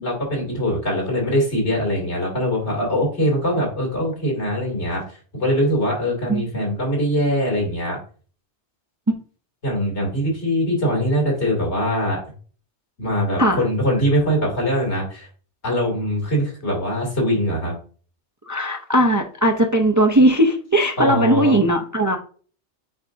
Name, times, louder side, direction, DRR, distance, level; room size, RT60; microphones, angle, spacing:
voice 1, 0.0-5.0 5.4-8.0 9.6-12.2 13.0-15.3 15.6-17.8 21.0-21.5, equal, 80° left, -2 dB, 2.7 m, -22 dB
voice 2, 18.5-22.2, right 1 dB, 25° right, 4 dB, 0.4 m, -18 dB
7.8 x 4.8 x 2.5 m, 0.41 s
omnidirectional pair, 1.1 m